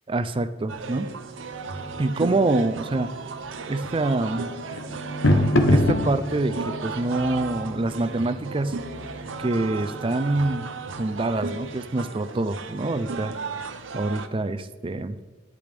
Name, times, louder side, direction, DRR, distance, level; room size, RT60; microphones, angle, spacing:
voice 1, 0.1-1.1 2.0-3.1 3.7-4.5 5.7-6.6 6.8-8.7 9.4-10.7 11.0-13.3 13.9-15.2, right 2 dB, 30° right, 11 dB, 0.4 m, -25 dB
sound 1, 0.7-11.5, left 1 dB, 80° left, 1.0 m, -29 dB
sound 2, 0.7-14.3, right 4 dB, 85° right, 0.7 m, -35 dB
10.5 x 8.3 x 3.4 m, 1.3 s
head